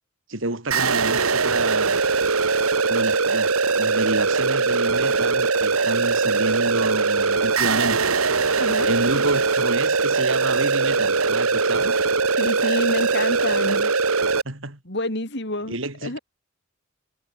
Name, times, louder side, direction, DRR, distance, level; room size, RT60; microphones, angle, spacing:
voice 1, 0.3-2.0 2.9-8.2 8.8-12.0 14.4-14.8 15.7-16.2, right 2 dB, 60° right, 3.3 m, -29 dB
sound 1, 0.7-14.4, right 4 dB, 90° right, 1.8 m, -21 dB
voice 2, 8.6-9.0 12.4-13.9 14.8-15.8 16.0-16.2, left 1 dB, 55° left, 6.4 m, -28 dB
head